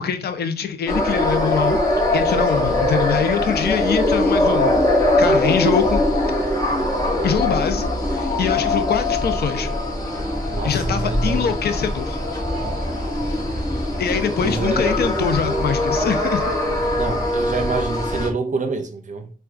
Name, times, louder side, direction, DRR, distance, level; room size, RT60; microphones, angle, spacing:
voice 1, 0.0-1.8 2.1-4.8 5.2-6.0 7.2-9.7 10.6-12.2 14.0-16.4, left 7 dB, 80° left, 0.4 m, -23 dB
sound 1, 0.9-18.3, left 1 dB, 20° left, 0.9 m, -21 dB
voice 2, 2.5-2.9 10.5-11.5 14.4-15.1 17.0-19.3, right 4 dB, 50° right, 0.6 m, -28 dB
sound 2, 10.1-18.3, right 1 dB, 5° right, 1.7 m, -34 dB
4.5 x 2.2 x 2.4 m
wide cardioid pair, 90°, 16 cm